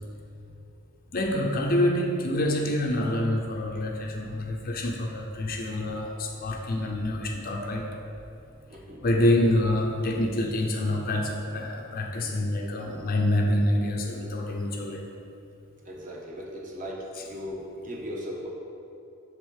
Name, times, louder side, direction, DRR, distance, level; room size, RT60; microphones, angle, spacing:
voice 1, 1.1-8.0 9.0-15.1, left 1 dB, 45° left, 0 dB, 0.7 m, -26 dB
voice 2, 8.7-9.1 12.2-13.2 15.8-18.5, equal, 40° right, -3 dB, 1.3 m, -39 dB
7.8 x 3.7 x 6.5 m, 2.6 s
head